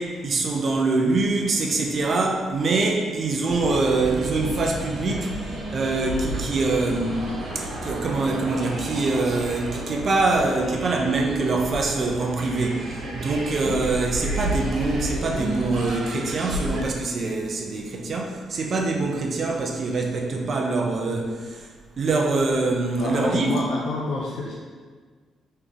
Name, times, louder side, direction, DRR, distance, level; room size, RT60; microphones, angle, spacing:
voice 1, 0.0-5.3 5.7-7.3 7.5-21.7 22.0-23.6, right 3 dB, 50° right, 1 dB, 0.7 m, -24 dB
sound 1, 3.5-16.8, right 1 dB, 75° right, 1.2 m, -32 dB
voice 2, 22.9-24.5, left 2 dB, 75° left, -5 dB, 0.6 m, -28 dB
3.9 x 3.3 x 3.5 m, 1.5 s
cardioid pair, 90°, 0 cm